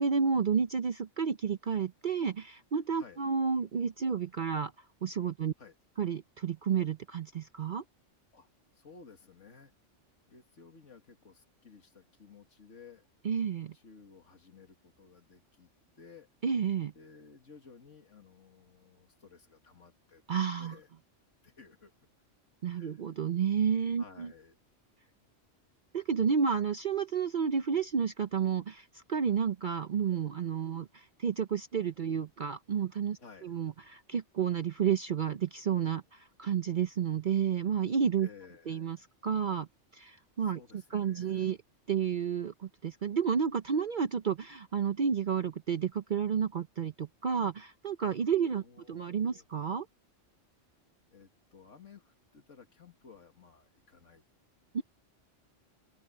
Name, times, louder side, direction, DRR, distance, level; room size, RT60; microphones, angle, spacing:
voice 1, 0.0-4.7 5.0-5.5 6.0-7.8 13.2-13.7 16.4-16.9 20.3-20.7 22.6-24.3 25.9-38.3 38.7-39.0 39.2-39.7 39.9-41.6 41.9-49.9 54.7-54.8, right 7 dB, 50° right, 0.7 m, -31 dB
voice 2, 8.7-9.7 10.3-13.1 13.7-15.7 16.0-16.3 16.9-20.2 20.6-20.9 21.4-21.9 22.7-23.0 24.0-24.6 33.2-33.6 38.2-39.1 40.4-41.5 48.6-49.5 51.1-54.2, left 5 dB, 80° left, 2.3 m, -55 dB
open air
omnidirectional pair, 1.2 m